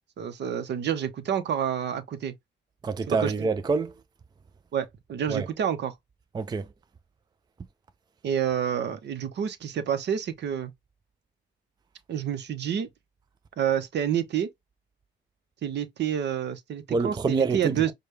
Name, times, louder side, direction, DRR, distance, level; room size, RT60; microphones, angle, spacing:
voice 1, 0.2-2.3 3.1-3.3 4.7-5.9 8.2-10.7 12.1-12.9 13.6-14.5 15.6-17.9, right 9 dB, 60° right, 0.8 m, -28 dB
voice 2, 2.8-4.0 5.3-5.5 6.3-6.7 16.9-17.9, right 4 dB, 20° right, 0.4 m, -27 dB
5.1 x 2.3 x 3.2 m
cardioid pair, 90°, 20 cm